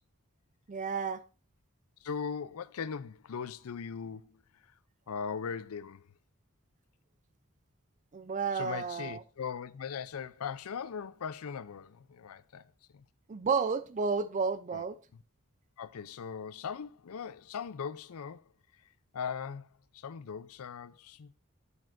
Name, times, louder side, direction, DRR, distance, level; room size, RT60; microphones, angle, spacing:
voice 1, 0.7-1.2 8.1-9.2 13.3-15.0, right 5 dB, 35° right, 0.4 m, -31 dB
voice 2, 2.0-4.4 5.1-6.1 8.5-12.7 12.9-13.1 14.7-14.8 15.1-15.2 15.8-18.5 19.1-19.7 19.9-21.3, left 6 dB, 80° left, 0.5 m, -39 dB
8.7 x 8.5 x 2.5 m
head